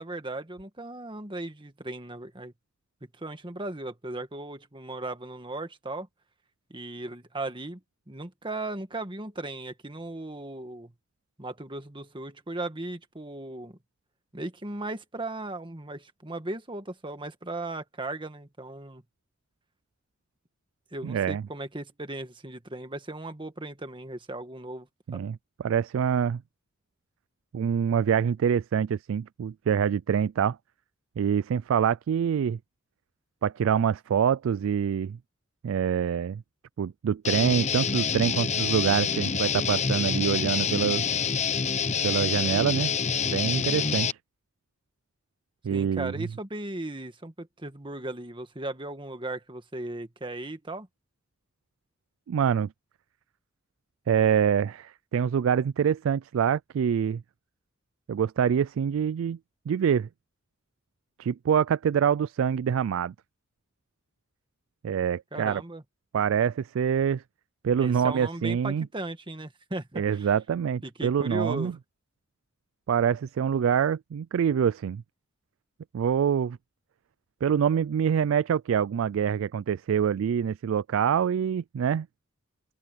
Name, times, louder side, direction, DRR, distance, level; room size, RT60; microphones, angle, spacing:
voice 1, 0.0-2.5 3.2-6.1 6.7-7.8 8.1-10.9 11.4-13.8 14.3-19.0 20.9-24.9 25.1-25.3 45.7-50.9 65.3-65.8 67.8-70.3 70.8-71.8, right 2 dB, 25° right, 1.7 m, -37 dB
voice 2, 21.0-21.4 25.1-25.4 25.6-26.4 27.5-30.6 31.2-32.6 33.4-35.2 35.6-36.4 36.8-41.0 42.0-42.9 43.2-44.1 45.6-46.1 52.3-52.7 54.1-57.2 58.1-59.4 59.7-60.1 61.2-63.1 64.8-65.6 66.1-67.2 67.6-68.9 70.0-71.7 72.9-75.0 75.9-76.6 77.4-82.1, right 8 dB, 65° right, 0.3 m, -25 dB
Guitar, 37.2-44.1, left 6 dB, 35° left, 0.9 m, -27 dB
open air
head